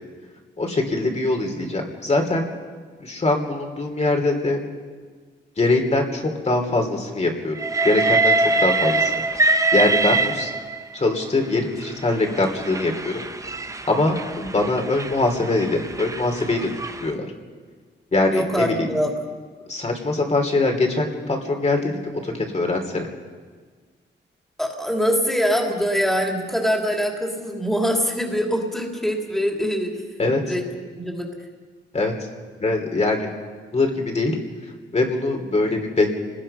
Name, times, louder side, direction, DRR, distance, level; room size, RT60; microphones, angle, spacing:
voice 1, 0.6-2.5 3.0-4.6 5.6-7.6 7.8-8.3 8.6-10.5 10.9-13.2 13.9-16.7 17.0-17.3 18.1-18.9 19.7-23.1 30.2-30.5 31.9-32.1 32.6-33.3 33.7-34.4 34.9-36.1, left 2 dB, 35° left, 2 dB, 3.1 m, -22 dB
Train, 7.6-11.0 11.8-17.1, right 2 dB, 15° right, 0.9 m, -23 dB
voice 2, 18.3-19.1 24.6-30.0 30.4-30.6 31.0-31.3, equal, ahead, 1 dB, 3.2 m, -23 dB
29.5 x 20.0 x 5.7 m, 1.5 s
wide cardioid pair, 120°, 19 cm